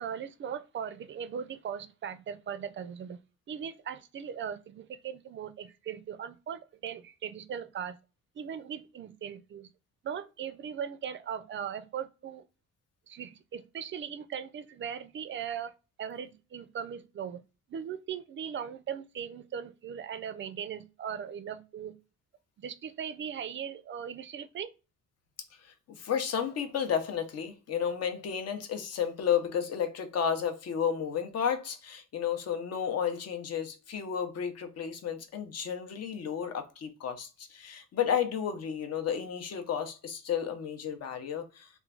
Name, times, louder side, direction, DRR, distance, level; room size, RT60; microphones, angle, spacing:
voice 1, 0.0-3.2 3.5-8.0 8.4-9.7 10.0-12.5 13.1-15.7 16.0-17.4 17.7-22.0 22.6-24.7, right 8 dB, 40° right, 0.4 m, -39 dB
voice 2, 25.6-41.7, left 8 dB, 55° left, 0.7 m, -32 dB
3.0 x 2.2 x 2.3 m
cardioid pair, 90°, 30 cm